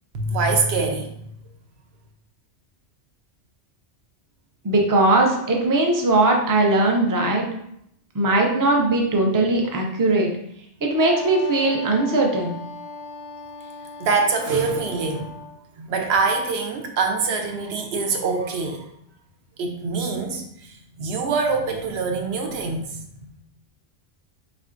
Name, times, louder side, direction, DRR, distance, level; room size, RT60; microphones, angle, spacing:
voice 1, 0.1-1.1 14.0-15.4 15.8-18.9 19.6-23.3, right 4 dB, 65° right, 4 dB, 0.8 m, -24 dB
voice 2, 4.6-7.4 8.1-10.3 10.8-12.6, right 2 dB, 30° right, 0 dB, 0.4 m, -19 dB
Wind instrument woodwind instrument, 10.9-15.6, left 4 dB, 50° left, 0.5 m, -38 dB
4.2 x 3.4 x 2.5 m, 0.73 s
omnidirectional pair, 1.2 m